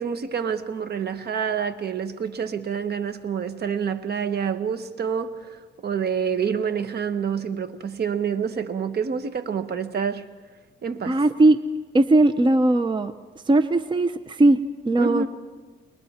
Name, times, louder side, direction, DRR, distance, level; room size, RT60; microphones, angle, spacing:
voice 1, 0.0-10.2 10.8-11.2 15.0-15.3, right 6 dB, 55° right, 1.3 m, -27 dB
voice 2, 11.1-11.6 11.9-13.1 13.5-14.6 14.9-15.3, right 2 dB, 25° right, 0.7 m, -18 dB
29.5 x 21.5 x 4.4 m
cardioid pair, 90°, 20 cm